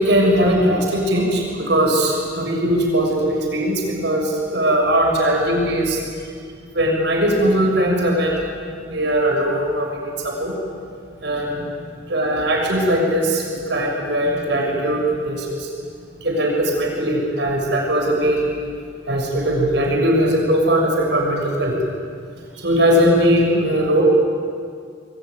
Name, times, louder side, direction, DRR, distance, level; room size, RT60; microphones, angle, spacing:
voice 1, 0.0-6.0 6.7-8.5 8.8-10.5 11.2-11.7 12.1-13.4 13.7-15.7 16.2-18.5 19.1-21.7 22.5-24.0, equal, 65° right, 0 dB, 6.5 m, -19 dB
25.0 x 23.5 x 9.5 m, 2.2 s
head